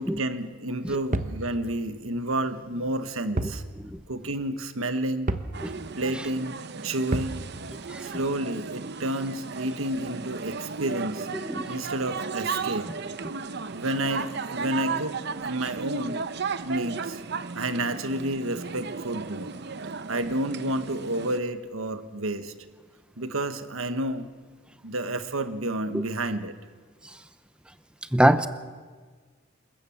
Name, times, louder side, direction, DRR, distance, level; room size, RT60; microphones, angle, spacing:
voice 1, 0.0-3.6 4.1-5.3 6.0-6.5 6.8-7.4 8.0-11.3 11.7-12.9 13.7-16.2 16.6-17.2 17.5-19.5 20.1-22.5 23.2-24.3 24.8-26.5, right 1 dB, 80° right, 9 dB, 1.4 m, -30 dB
sound 1, 1.1-1.4 3.4-3.6 4.0-4.1 5.3-5.6 7.1-7.4, right 1 dB, 35° right, 1.0 m, -28 dB
sound 2, 5.5-21.4, right 5 dB, 55° right, 0.8 m, -35 dB
voice 2, 11.4-11.8 28.1-28.5, right 1 dB, 5° right, 11 dB, 0.7 m, -23 dB
27.5 x 15.0 x 7.3 m, 1.5 s
head